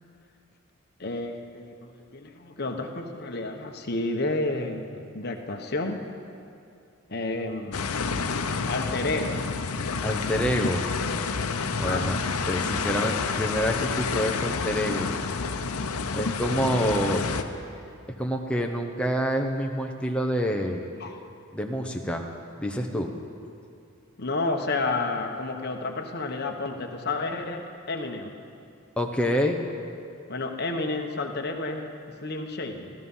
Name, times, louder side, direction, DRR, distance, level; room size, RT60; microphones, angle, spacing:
voice 1, 1.0-6.0 7.1-7.9 8.7-9.4 11.9-12.1 16.8-16.9 21.0-21.2 24.2-28.3 30.3-31.9 32.2-32.9, left 2 dB, 45° left, 3 dB, 1.1 m, -30 dB
sound 1, 7.7-17.4, left 4 dB, 90° left, 0.8 m, -29 dB
voice 2, 10.0-11.0 11.8-12.2 12.4-15.2 16.1-17.2 18.2-20.8 21.5-22.3 22.6-23.1 29.0-29.6, equal, 5° left, 1 dB, 0.9 m, -27 dB
15.5 x 14.0 x 5.6 m, 2.5 s
head